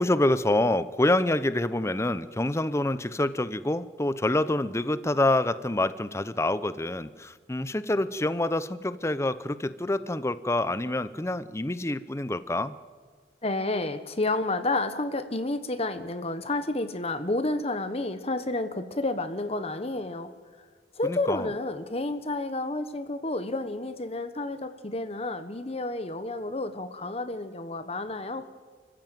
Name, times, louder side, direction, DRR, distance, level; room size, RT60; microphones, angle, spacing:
voice 1, 0.0-12.7 21.0-21.5, left 1 dB, 15° left, 14 dB, 0.7 m, -27 dB
voice 2, 13.4-20.3 21.0-28.5, left 2 dB, 35° left, 11 dB, 1.2 m, -30 dB
30.0 x 15.0 x 9.2 m, 1.5 s
head